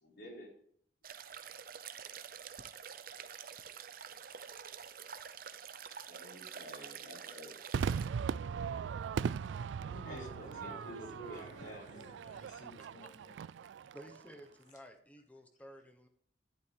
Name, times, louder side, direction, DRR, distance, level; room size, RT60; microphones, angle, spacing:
voice 1, 0.0-0.5 6.1-7.6 10.0-11.8, equal, 70° left, -2 dB, 4.5 m, -49 dB
sound 1, 1.0-8.1, right 7 dB, 50° right, 0.6 m, -48 dB
Crowd / Fireworks, 7.7-14.3, right 6 dB, 90° right, 0.3 m, -39 dB
voice 2, 8.6-9.4 9.8-13.7, left 2 dB, 45° left, 5 dB, 1.6 m, -55 dB
voice 3, 13.9-16.1, equal, 10° left, 5 dB, 1.1 m, -55 dB
11.0 x 10.5 x 3.4 m, 0.64 s
head